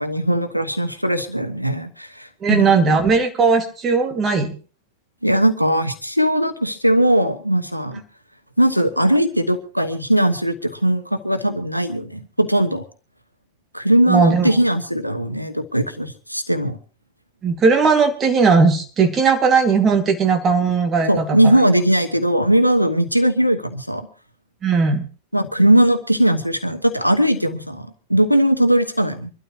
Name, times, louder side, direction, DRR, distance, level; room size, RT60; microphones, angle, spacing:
voice 1, 0.0-3.0 5.2-8.0 8.6-12.8 13.7-16.8 21.1-24.1 25.3-29.3, right 1 dB, 90° left, 9 dB, 1.1 m, -19 dB
voice 2, 2.4-4.6 14.1-14.5 17.4-21.5 24.6-25.0, right 5 dB, 25° right, 5 dB, 2.5 m, -17 dB
25.0 x 12.5 x 3.2 m, 0.37 s
figure-of-eight pair, 90°, 0 cm